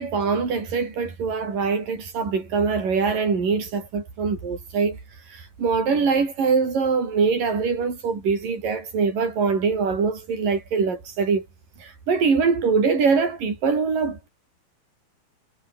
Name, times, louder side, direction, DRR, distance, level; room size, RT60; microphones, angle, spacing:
voice 1, 0.0-5.0 5.3-11.5 11.8-14.3, right 5 dB, 60° right, 7.6 m, -23 dB
omnidirectional pair, 4.3 m